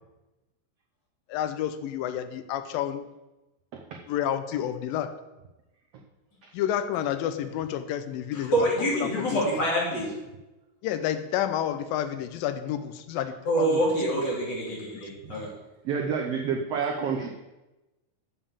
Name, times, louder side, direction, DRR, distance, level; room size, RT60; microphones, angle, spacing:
voice 1, 1.3-3.1 4.1-5.1 6.5-9.4 10.8-13.8 14.9-15.1, left 10 dB, 90° left, 10 dB, 2.4 m, -30 dB
voice 2, 3.7-4.0 6.4-6.5 15.2-15.3 15.8-17.3, right 6 dB, 85° right, 1 dB, 1.3 m, -29 dB
voice 3, 8.5-10.1 13.5-15.5, right 1 dB, 30° left, -5 dB, 3.4 m, -26 dB
7.5 x 7.2 x 6.8 m, 1.0 s
omnidirectional pair, 4.0 m